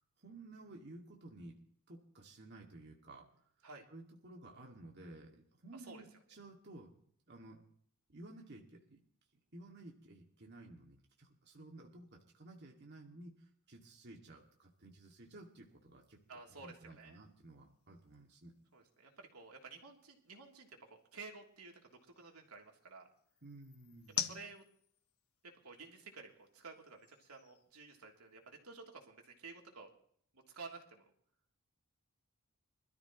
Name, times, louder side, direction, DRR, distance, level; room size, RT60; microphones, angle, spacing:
voice 1, 0.2-1.6 1.9-3.3 3.9-7.0 7.3-7.6 8.1-9.0 9.5-16.2 16.6-18.6 23.4-24.4, right 2 dB, 50° right, 0 dB, 2.3 m, -54 dB
voice 2, 5.7-6.0 16.3-17.2 18.7-21.8 22.2-23.1 24.2-24.6 25.6-29.9 30.5-31.0, right 4 dB, 85° right, 1 dB, 3.2 m, -52 dB
sound 1, 14.4-28.6, left 10 dB, 75° left, 1.4 m, -51 dB
25.5 x 13.5 x 3.1 m, 0.63 s
head